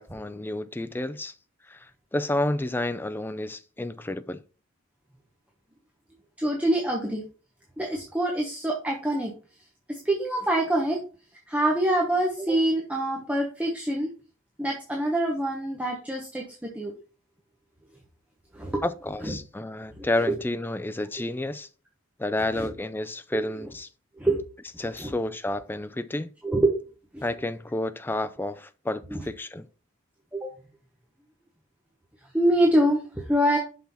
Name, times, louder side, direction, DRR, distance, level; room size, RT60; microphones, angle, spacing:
voice 1, 0.0-1.4 1.7-4.4 18.8-21.7 22.2-23.9 24.8-26.3 27.2-29.7, left 1 dB, 10° left, 0.3 m, -30 dB
voice 2, 6.4-7.2 7.8-9.3 9.9-11.0 11.5-14.1 14.6-16.9 18.5-18.8 20.0-20.4 22.6-22.7 23.3-23.4 24.2-24.4 25.0-25.1 26.4-26.8 27.1-27.2 29.1-29.2 30.3-30.5 32.3-33.6, right 1 dB, 5° right, 1.0 m, -25 dB
6.0 x 5.8 x 4.1 m
head